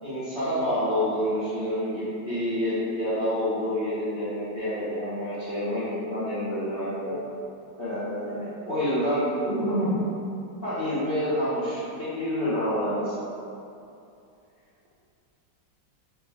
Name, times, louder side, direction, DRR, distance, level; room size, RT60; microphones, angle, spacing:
voice 1, 0.0-7.2 7.8-8.4 8.6-10.0 10.6-13.2, equal, 40° left, -13 dB, 0.9 m, -28 dB
voice 2, 8.2-8.6 14.6-14.9, right 5 dB, 70° right, -8 dB, 1.5 m, -46 dB
4.2 x 2.5 x 3.4 m, 2.6 s
omnidirectional pair, 1.9 m